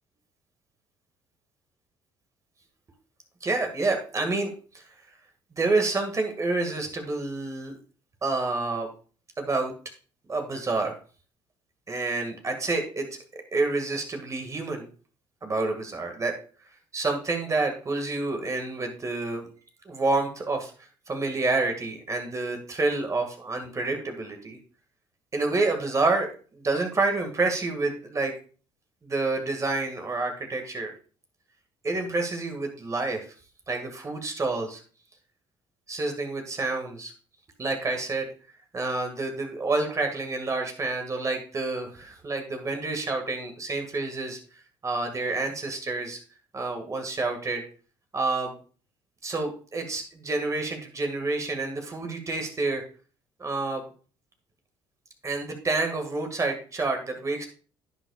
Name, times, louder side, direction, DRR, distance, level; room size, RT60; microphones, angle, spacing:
voice 1, 3.4-4.5 4.7-4.8 5.5-7.8 8.2-8.9 9.4-9.7 10.3-11.0 11.9-13.1 13.3-14.9 15.4-16.4 16.9-19.5 19.9-20.7 21.1-24.6 25.3-28.3 29.0-30.9 31.8-33.3 33.7-34.8 35.9-37.1 37.6-38.3 38.7-44.4 44.8-46.2 46.5-47.6 48.1-48.5 49.2-52.8 53.4-53.8 55.2-57.5, right 3 dB, 30° right, 4 dB, 1.9 m, -28 dB
11.0 x 8.0 x 2.4 m, 0.39 s
supercardioid pair, 75°, 10 cm